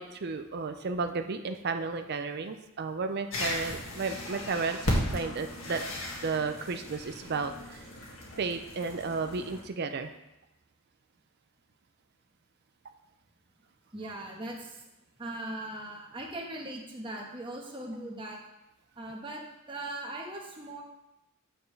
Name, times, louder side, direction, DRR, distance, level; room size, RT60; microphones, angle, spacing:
voice 1, 0.0-5.8 6.2-7.8 8.4-10.1, right 4 dB, 50° right, 8 dB, 0.5 m, -33 dB
sound 1, 3.3-9.6, left 1 dB, 75° left, 1.9 m, -35 dB
voice 2, 13.9-14.8 15.2-18.4 19.0-19.4 19.7-20.8, right 1 dB, 25° right, -1 dB, 1.3 m, -39 dB
9.0 x 6.9 x 3.3 m, 0.93 s
head